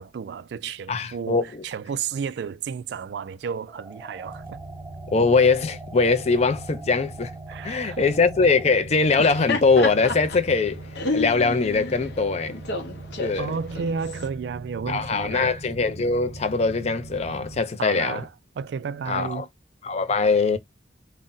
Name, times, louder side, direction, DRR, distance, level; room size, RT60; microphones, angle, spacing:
voice 1, 0.0-4.6 7.5-8.2 13.4-15.6 17.8-18.3 18.5-19.5, right 6 dB, 70° right, 0.3 m, -32 dB
voice 2, 0.9-1.6 5.1-7.3 7.6-10.8 11.1-12.5 13.2-13.5 14.9-18.2 19.1-19.5 19.8-20.6, left 4 dB, 35° left, 0.4 m, -22 dB
sound 1, 3.7-8.7, right 3 dB, 10° right, 0.5 m, -44 dB
sound 2, 4.2-17.6, right 2 dB, 55° right, 0.7 m, -40 dB
Laughter, 9.0-14.3, left 3 dB, 65° left, 0.8 m, -31 dB
2.6 x 2.1 x 3.7 m
head